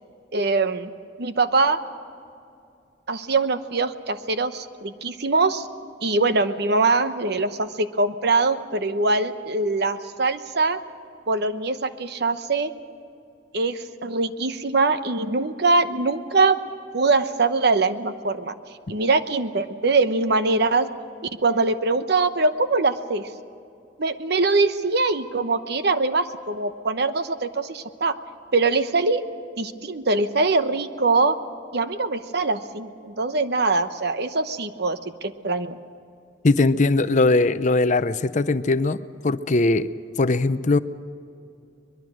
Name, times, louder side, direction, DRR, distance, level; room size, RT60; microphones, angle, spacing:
voice 1, 0.3-0.9 1.2-1.8 3.1-5.7 6.0-10.8 11.3-12.7 13.5-16.6 16.9-18.5 18.9-20.9 21.4-23.3 24.0-28.1 28.5-29.2 29.6-31.4 31.7-35.8, right 3 dB, 60° right, 10 dB, 1.0 m, -22 dB
voice 2, 36.4-39.0 39.2-39.9 40.2-40.8, left 2 dB, 40° left, 13 dB, 0.6 m, -20 dB
23.5 x 21.5 x 6.3 m, 2.5 s
head